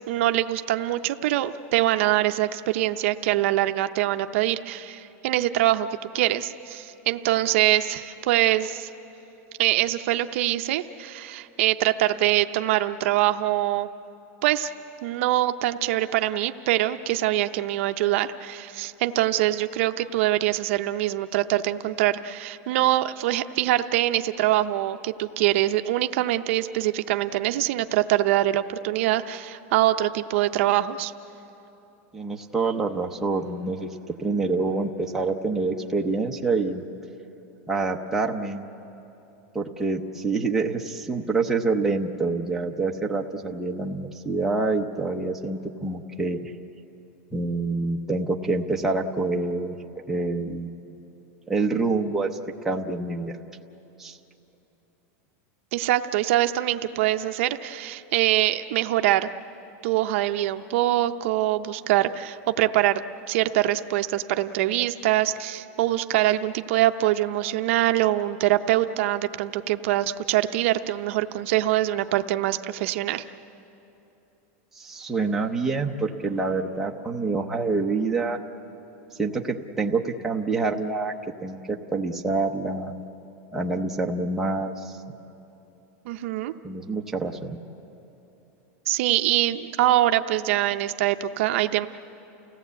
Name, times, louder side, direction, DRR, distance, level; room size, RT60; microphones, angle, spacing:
voice 1, 0.1-5.9 6.1-8.9 9.6-13.9 14.4-14.7 15.0-31.1 55.7-59.3 59.8-63.0 63.3-73.2 86.1-86.5 88.9-91.9, right 14 dB, 55° right, 9 dB, 0.6 m, -24 dB
voice 2, 32.1-36.8 37.7-38.7 39.5-46.5 47.3-49.8 50.1-50.9 51.5-52.3 52.6-53.3 54.0-54.2 74.7-78.4 79.2-81.1 81.4-83.0 83.5-85.0 86.6-87.6, right 3 dB, 5° right, 0 dB, 0.8 m, -27 dB
29.5 x 17.0 x 8.2 m, 3.0 s
supercardioid pair, 170°, 8 cm